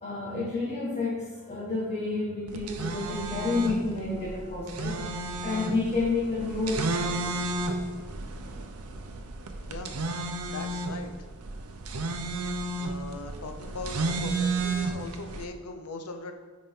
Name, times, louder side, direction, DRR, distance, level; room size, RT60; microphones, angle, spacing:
voice 1, 0.0-6.9, left 3 dB, 30° left, -8 dB, 1.5 m, -30 dB
sound 1, 2.5-15.4, right 2 dB, 80° right, 0.7 m, -32 dB
voice 2, 9.7-10.0 10.4-11.1 12.8-16.3, left 3 dB, 85° left, 6 dB, 0.8 m, -40 dB
9.5 x 4.2 x 3.8 m, 1.5 s
head